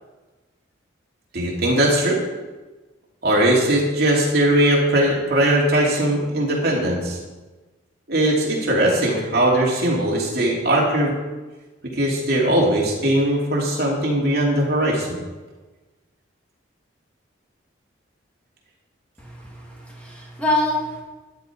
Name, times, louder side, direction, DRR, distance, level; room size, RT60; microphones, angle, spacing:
voice 1, 1.3-2.2 3.2-7.2 8.1-11.2 12.0-15.2, right 1 dB, 50° right, -3 dB, 3.1 m, -19 dB
voice 2, 19.2-21.0, left 1 dB, 5° left, -4 dB, 2.2 m, -25 dB
13.0 x 10.0 x 4.7 m, 1.2 s
head